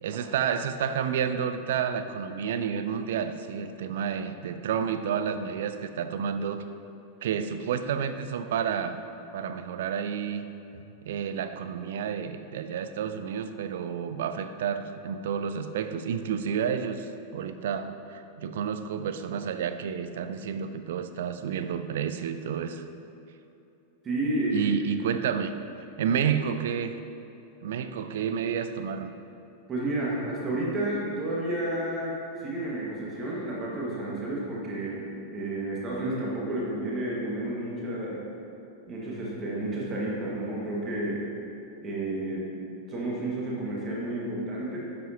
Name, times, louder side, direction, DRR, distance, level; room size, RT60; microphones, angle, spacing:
voice 1, 0.0-6.7 7.2-9.0 9.3-10.5 11.0-22.8 24.5-25.5 26.0-26.9 27.6-29.1, right 7 dB, 55° right, 10 dB, 0.4 m, -30 dB
voice 2, 24.0-24.6 29.7-38.2 38.9-41.2 41.8-44.8, right 1 dB, 25° right, -5 dB, 1.7 m, -31 dB
10.5 x 7.5 x 2.9 m, 2.8 s
figure-of-eight pair, 90°, 0 cm